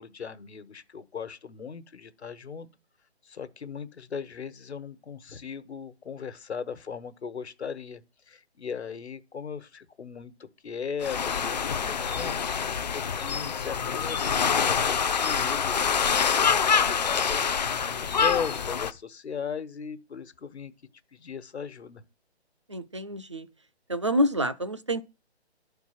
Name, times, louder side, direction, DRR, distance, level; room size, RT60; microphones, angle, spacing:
voice 1, 0.0-2.7 3.2-12.4 12.9-17.6 18.0-20.7 21.1-22.0, left 6 dB, 75° left, 1.3 m, -38 dB
sound 1, 11.0-18.9, left 6 dB, 40° left, 0.5 m, -26 dB
voice 2, 22.7-23.5 23.9-25.0, equal, 30° right, 0.4 m, -27 dB
11.5 x 4.5 x 5.7 m
hypercardioid pair, 155°, 34 cm